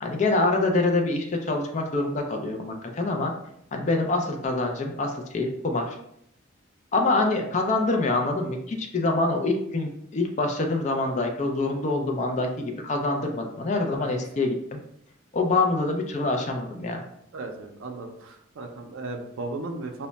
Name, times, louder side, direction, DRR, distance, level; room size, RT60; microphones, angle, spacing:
voice 1, 0.0-3.3 3.7-6.0 6.9-14.8 15.3-17.0, left 2 dB, 35° left, 3 dB, 0.4 m, -25 dB
voice 2, 17.3-20.1, right 2 dB, 85° right, 3 dB, 0.4 m, -36 dB
2.1 x 2.1 x 3.7 m, 0.75 s
head